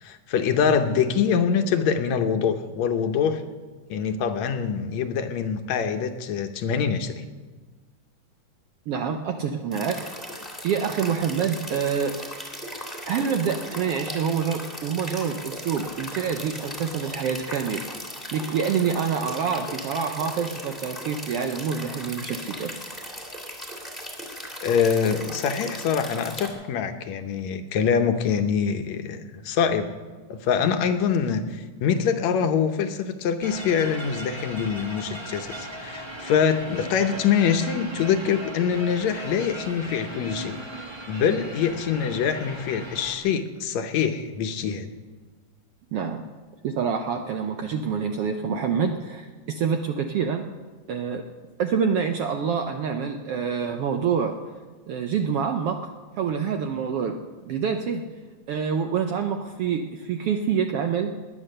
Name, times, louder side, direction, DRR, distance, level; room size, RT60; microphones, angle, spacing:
voice 1, 0.0-3.4 3.9-7.3 24.6-29.9 30.3-40.6 41.1-44.9, left 7 dB, 70° left, 7 dB, 2.0 m, -24 dB
voice 2, 8.9-10.1 10.6-12.1 13.1-17.8 18.3-22.8 45.9-46.2 46.6-50.4 50.9-51.3 51.6-54.4 54.9-57.2 57.4-58.0 58.5-61.2, right 6 dB, 75° right, 5 dB, 1.4 m, -26 dB
sound 1, 9.7-26.5, equal, ahead, 2.3 m, -37 dB
sound 2, 33.4-43.2, right 1 dB, 25° right, 0.6 m, -38 dB
19.0 x 9.7 x 6.6 m, 1.4 s
omnidirectional pair, 3.5 m